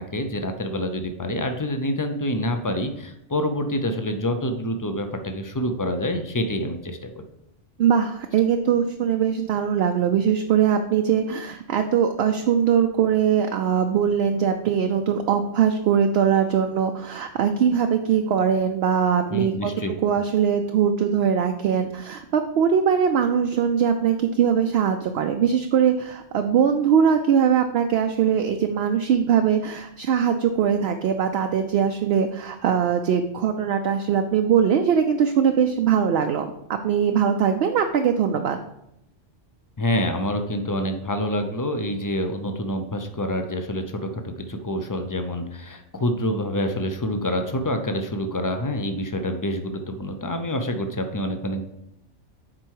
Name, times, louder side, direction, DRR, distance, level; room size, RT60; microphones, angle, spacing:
voice 1, 0.0-7.2 19.3-20.0 39.8-51.6, left 1 dB, 25° left, 6 dB, 0.5 m, -27 dB
voice 2, 7.8-19.7 20.0-38.6, right 7 dB, 65° right, 6 dB, 0.7 m, -21 dB
7.6 x 4.7 x 4.6 m, 0.82 s
omnidirectional pair, 1.2 m